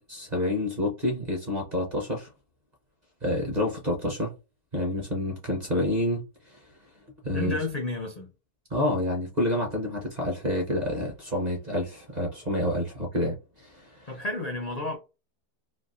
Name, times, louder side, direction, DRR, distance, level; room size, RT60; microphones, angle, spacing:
voice 1, 0.0-2.3 3.2-4.3 4.7-6.2 6.5-6.6 7.2-7.6 8.7-14.2, left 1 dB, 40° right, 0.7 m, -28 dB
voice 2, 7.3-8.3 14.1-15.0, left 3 dB, 60° left, 0.4 m, -31 dB
3.3 x 2.4 x 2.5 m
omnidirectional pair, 1.7 m